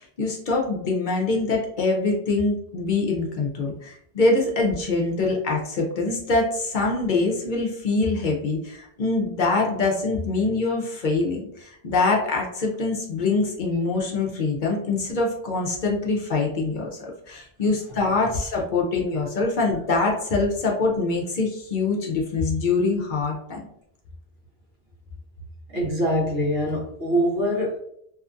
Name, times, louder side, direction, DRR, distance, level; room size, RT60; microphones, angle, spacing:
voice 1, 0.0-23.6, left 3 dB, 60° left, -1 dB, 0.6 m, -24 dB
voice 2, 25.7-27.8, equal, 70° right, -3 dB, 1.2 m, -24 dB
2.7 x 2.3 x 2.4 m, 0.73 s
omnidirectional pair, 1.0 m